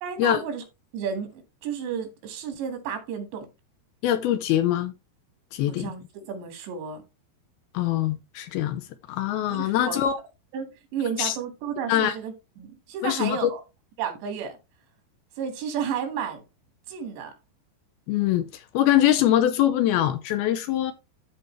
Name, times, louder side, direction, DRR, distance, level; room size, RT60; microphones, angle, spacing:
voice 1, 0.0-0.6 0.9-3.5 5.7-7.0 9.5-10.0 10.5-13.6 14.0-14.6 15.4-16.4 16.9-17.3, right 7 dB, 85° right, 4.1 m, -32 dB
voice 2, 4.0-4.9 5.5-5.9 7.7-8.8 9.1-10.2 11.2-11.4 11.9-12.1 13.0-13.5 18.1-20.9, left 12 dB, 80° left, 2.4 m, -23 dB
13.0 x 4.4 x 3.2 m
omnidirectional pair, 4.8 m